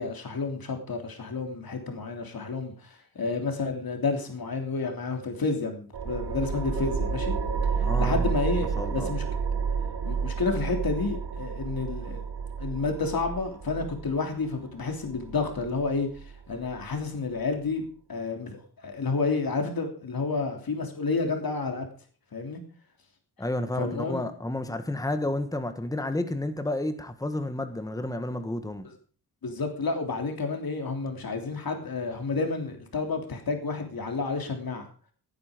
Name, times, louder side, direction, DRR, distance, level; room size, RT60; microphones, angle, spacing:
voice 1, 0.0-7.3 7.7-9.2 10.0-12.2 12.6-21.9 22.3-22.6 23.8-24.2 29.4-34.8, left 4 dB, 65° left, 4 dB, 3.2 m, -30 dB
sound 1, 5.9-17.0, right 6 dB, 85° right, 2.4 m, -30 dB
voice 2, 7.8-8.3 8.8-9.1 23.4-28.9, left 1 dB, 10° left, 8 dB, 1.4 m, -31 dB
17.5 x 9.7 x 5.1 m, 0.40 s
wide cardioid pair, 150°, 39 cm